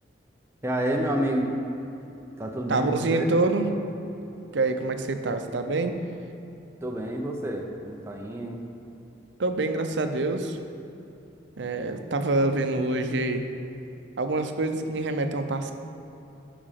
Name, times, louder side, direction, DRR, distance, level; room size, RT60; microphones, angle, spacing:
voice 1, 0.6-1.5 2.4-3.3 6.8-8.6, right 1 dB, 15° right, 1 dB, 0.7 m, -29 dB
voice 2, 2.7-3.7 4.5-6.0 9.4-10.6 11.6-13.5 14.2-15.7, right 2 dB, 75° right, 7 dB, 0.6 m, -26 dB
10.0 x 5.0 x 5.8 m, 2.9 s
head